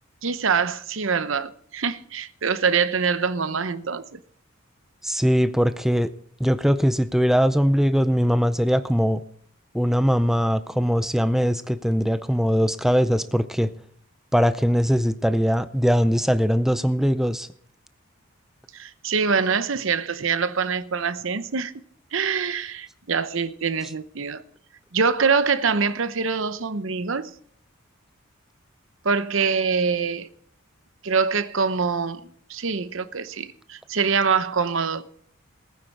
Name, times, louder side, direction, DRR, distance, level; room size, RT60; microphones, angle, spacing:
voice 1, 0.2-4.2 18.7-21.7 22.1-24.4 24.9-27.3 29.0-30.3 31.0-35.0, right 5 dB, 65° right, 0.8 m, -24 dB
voice 2, 5.0-6.1 6.4-9.2 9.7-13.7 14.3-17.5, equal, ahead, 0.4 m, -21 dB
19.5 x 9.5 x 4.6 m
head